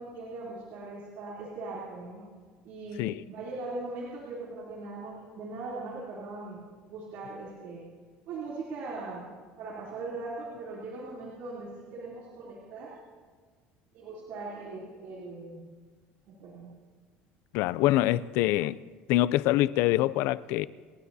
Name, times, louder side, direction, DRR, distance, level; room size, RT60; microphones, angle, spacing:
voice 1, 0.0-2.2 2.6-6.6 6.9-7.8 8.3-9.3 9.6-13.0 13.9-15.7 16.2-16.7, right 3 dB, 60° right, 3.3 m, -40 dB
voice 2, 17.5-18.8 19.1-20.7, left 15 dB, 70° left, 0.4 m, -25 dB
29.0 x 11.5 x 2.8 m
cardioid pair, 140°, 4 cm